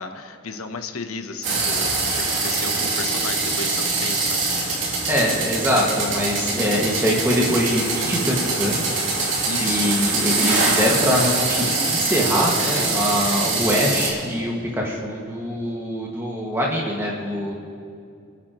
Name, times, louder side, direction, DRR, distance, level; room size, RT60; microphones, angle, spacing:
voice 1, 0.0-4.4 9.5-10.0, left 4 dB, 90° left, 7 dB, 1.0 m, -34 dB
sound 1, 1.4-14.1, right 3 dB, 65° right, 2.9 m, -23 dB
voice 2, 5.1-9.0 9.6-17.5, equal, 10° right, -3 dB, 2.0 m, -23 dB
30.0 x 10.0 x 3.1 m, 2.4 s
head